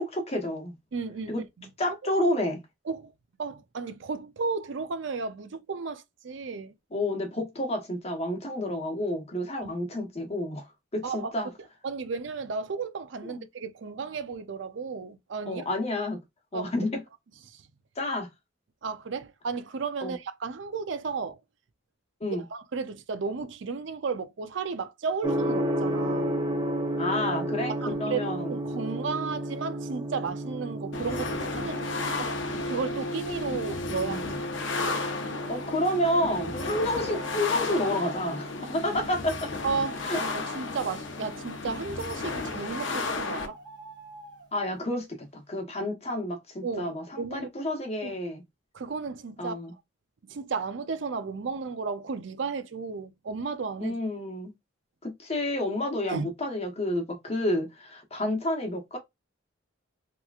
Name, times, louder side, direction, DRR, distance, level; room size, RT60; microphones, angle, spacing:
voice 1, 0.0-0.7 1.3-1.4 1.8-2.6 6.9-10.7 10.9-11.5 13.2-13.4 15.5-16.2 16.5-17.0 18.0-18.3 20.0-20.2 22.2-22.4 27.0-28.5 33.9-34.4 35.5-39.5 40.0-40.2 44.5-48.4 49.4-49.7 53.8-54.5 55.0-59.0, left 1 dB, 35° left, 1.0 m, -30 dB
voice 2, 0.9-2.0 2.9-3.1 3.4-6.7 9.6-9.7 11.0-11.3 11.8-15.7 16.5-16.7 17.5-17.7 18.8-21.4 22.5-26.3 27.7-28.2 28.5-32.3 32.7-34.2 39.6-43.6 46.6-47.5 48.0-48.2 48.7-49.8 50.3-54.0 56.1-56.3, right 4 dB, 70° right, 0.5 m, -34 dB
Gong, 25.2-43.1, right 1 dB, 20° right, 0.7 m, -34 dB
sound 1, 30.9-43.5, left 3 dB, 70° left, 0.8 m, -33 dB
sound 2, 36.9-37.8 42.4-42.5 43.2-44.5, right 2 dB, 85° right, 1.5 m, -46 dB
3.4 x 2.9 x 2.4 m
head